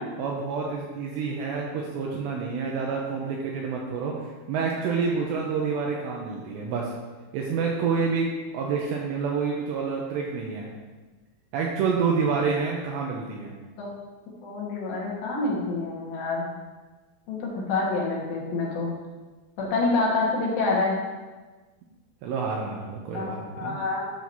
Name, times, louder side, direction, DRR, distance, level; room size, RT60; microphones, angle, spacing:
voice 1, 0.2-6.9 7.3-10.7 11.5-13.5 22.2-23.8, right 5 dB, 85° right, -1 dB, 2.5 m, -28 dB
voice 2, 14.4-16.4 17.3-18.9 19.6-21.0 23.1-24.0, left 3 dB, 70° left, -4 dB, 3.4 m, -27 dB
12.0 x 6.0 x 2.8 m, 1.3 s
omnidirectional pair, 5.7 m